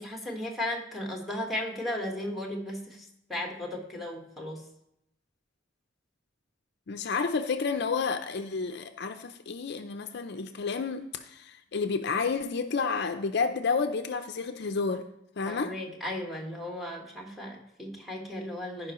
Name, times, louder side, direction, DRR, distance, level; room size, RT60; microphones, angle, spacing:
voice 1, 0.0-4.6 15.5-18.9, left 1 dB, ahead, 0 dB, 1.5 m, -35 dB
voice 2, 6.9-15.0 15.4-15.7, left 4 dB, 60° left, 8 dB, 0.5 m, -30 dB
15.0 x 5.3 x 3.0 m, 0.80 s
head